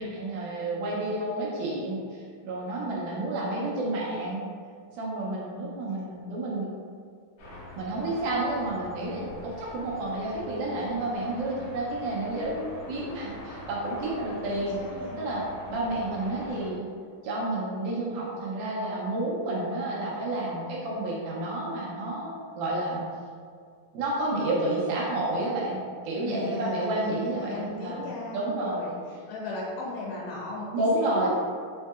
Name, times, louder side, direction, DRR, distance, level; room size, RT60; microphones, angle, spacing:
voice 1, 0.0-4.4 5.0-6.7 7.8-12.5 12.9-14.8 15.2-15.4 15.7-16.9 17.2-23.0 23.9-28.0 28.3-28.8 30.7-31.3, right 2 dB, 85° right, -5 dB, 1.8 m, -30 dB
sound 1, 7.4-16.7, left 2 dB, 50° left, 1.7 m, -44 dB
voice 2, 12.3-13.3 14.6-15.2 26.2-31.3, left 2 dB, 90° left, -6 dB, 2.5 m, -37 dB
5.6 x 2.7 x 2.3 m, 2.2 s
omnidirectional pair, 4.2 m